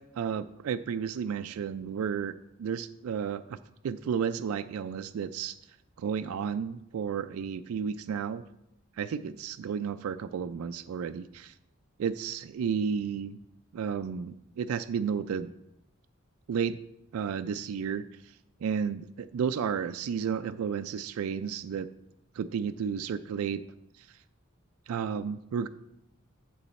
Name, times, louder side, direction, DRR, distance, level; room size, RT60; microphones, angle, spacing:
voice 1, 0.1-2.3 2.6-3.6 3.8-5.6 6.0-8.4 9.0-11.5 12.0-13.4 13.7-15.5 16.5-16.8 17.1-18.1 18.6-21.9 22.4-23.6 24.0-24.1 24.9-25.7, right 7 dB, 90° right, 11 dB, 0.3 m, -32 dB
7.1 x 6.9 x 4.2 m, 0.83 s
head